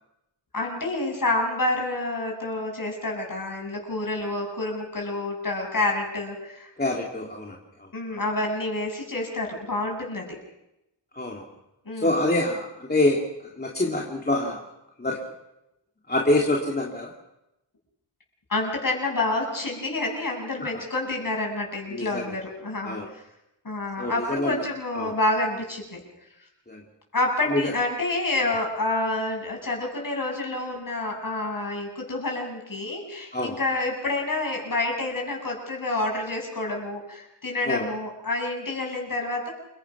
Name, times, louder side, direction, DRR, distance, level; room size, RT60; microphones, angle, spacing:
voice 1, 0.5-6.7 7.9-10.4 11.9-12.1 18.5-23.2 23.6-26.0 27.1-39.5, left 2 dB, 50° left, 0 dB, 7.7 m, -28 dB
voice 2, 6.8-7.9 11.2-11.4 12.0-13.2 13.5-14.6 15.0-15.2 16.1-17.1 20.7-20.8 21.9-22.4 22.8-23.1 24.0-24.6 24.9-25.1 26.7-26.8 27.5-27.7 33.3-33.6 37.6-37.9, left 2 dB, 20° left, -1 dB, 2.7 m, -26 dB
28.5 x 22.5 x 6.1 m, 0.89 s
wide cardioid pair, 110°, 44 cm